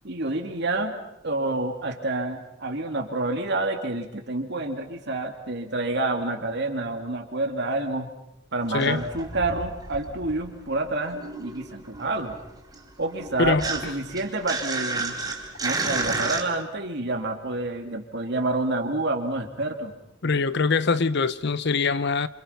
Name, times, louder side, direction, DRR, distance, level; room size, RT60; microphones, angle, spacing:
voice 1, 0.0-1.0 1.2-8.1 8.5-12.4 13.0-15.2 15.6-19.9, right 2 dB, 60° right, 2.9 m, -28 dB
sound 1, 8.6-10.6 10.8-16.4, right 3 dB, 20° right, 4.2 m, -32 dB
voice 2, 20.2-22.3, left 4 dB, 60° left, 0.9 m, -23 dB
27.5 x 27.0 x 5.9 m
head